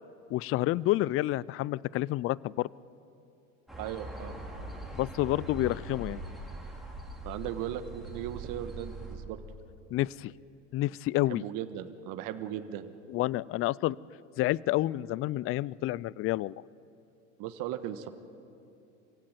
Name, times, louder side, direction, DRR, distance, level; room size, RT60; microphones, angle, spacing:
voice 1, 0.3-2.7 4.9-6.2 9.9-10.3 10.7-11.4 13.1-14.0 14.4-16.5, left 16 dB, 35° left, 23 dB, 0.4 m, -29 dB
sound 1, 3.7-9.2, right 2 dB, ahead, 5.4 m, -42 dB
voice 2, 3.8-4.4 7.2-9.4 11.3-12.9 17.4-18.1, right 11 dB, 55° right, 9 dB, 1.5 m, -37 dB
26.0 x 16.0 x 9.4 m, 2.7 s
hypercardioid pair, 85°, 39 cm